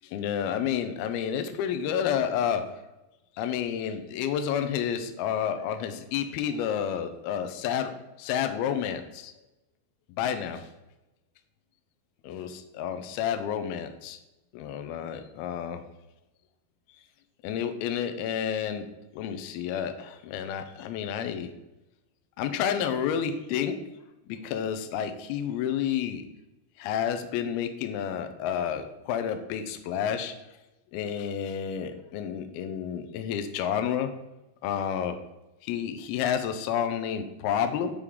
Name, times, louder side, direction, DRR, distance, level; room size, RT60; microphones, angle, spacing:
voice 1, 0.0-2.6 3.4-7.9 8.2-9.3 10.2-10.7 12.2-14.2 14.5-15.8 17.4-18.9 19.2-21.5 22.4-23.8 24.3-26.2 26.8-30.3 30.9-34.1 34.6-35.2 35.6-37.9, left 8 dB, 85° left, 7 dB, 2.3 m, -30 dB
8.5 x 4.8 x 3.6 m, 0.99 s
omnidirectional pair, 5.0 m